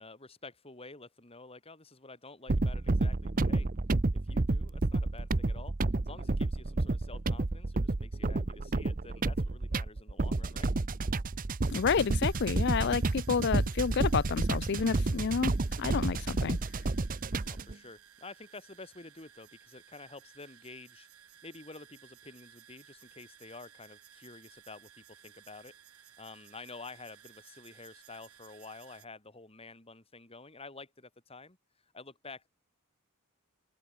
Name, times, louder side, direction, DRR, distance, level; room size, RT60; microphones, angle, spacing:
voice 1, 0.0-3.7 4.1-5.8 6.0-10.7 17.4-31.6 31.9-32.5, left 3 dB, 25° left, 3.4 m, -50 dB
sound 1, 2.5-17.7, right 2 dB, 40° right, 0.7 m, -30 dB
sound 2, 11.6-29.1, right 10 dB, 80° right, 3.6 m, -58 dB
voice 2, 11.7-15.5 15.8-16.6, left 6 dB, 50° left, 0.5 m, -29 dB
open air
head